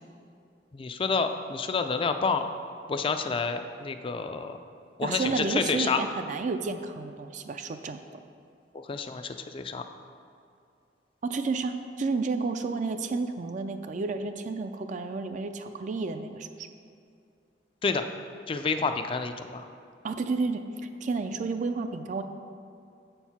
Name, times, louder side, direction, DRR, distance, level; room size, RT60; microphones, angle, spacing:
voice 1, 0.7-2.5 2.9-4.6 5.0-6.0 8.7-9.9 17.8-18.1 18.5-19.7, left 4 dB, 30° left, 8 dB, 0.3 m, -29 dB
voice 2, 5.0-8.0 11.2-16.7 20.0-20.6 21.0-22.2, right 4 dB, 45° right, 8 dB, 0.4 m, -31 dB
7.3 x 4.5 x 5.6 m, 2.5 s
head